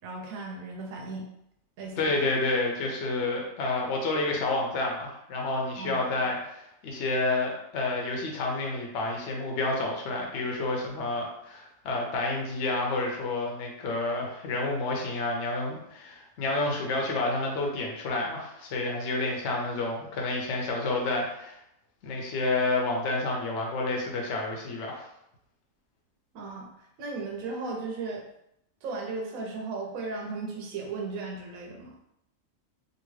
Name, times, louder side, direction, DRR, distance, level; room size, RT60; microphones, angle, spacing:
voice 1, 0.0-1.3 1.8-2.3 5.8-6.0 26.3-26.7 27.0-28.3 28.8-32.0, right 3 dB, 85° right, 0 dB, 1.0 m, -36 dB
voice 2, 2.0-21.6 22.0-25.1, left 2 dB, 65° left, 0 dB, 0.9 m, -29 dB
2.7 x 2.7 x 3.0 m, 0.80 s
omnidirectional pair, 1.4 m